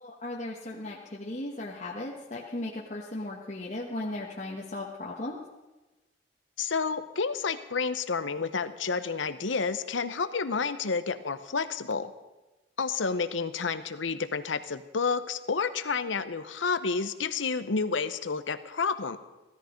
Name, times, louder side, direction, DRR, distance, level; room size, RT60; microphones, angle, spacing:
voice 1, 0.0-5.4, left 2 dB, 40° left, -3 dB, 1.2 m, -36 dB
voice 2, 6.6-12.1 12.8-19.2, left 5 dB, 80° left, 12 dB, 0.8 m, -30 dB
16.0 x 13.5 x 5.2 m, 1.1 s
head